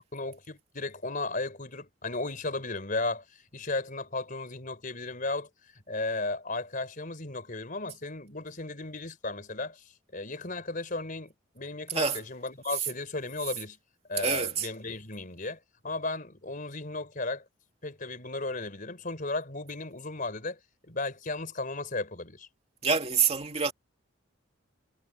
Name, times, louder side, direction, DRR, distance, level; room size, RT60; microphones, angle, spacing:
voice 1, 0.1-3.2 3.5-5.5 5.9-9.8 10.1-13.8 14.1-17.4 17.8-20.6 20.9-22.5, left 2 dB, 40° left, 4.3 m, -35 dB
voice 2, 14.2-14.7 22.8-23.7, right 5 dB, 30° right, 2.5 m, -26 dB
head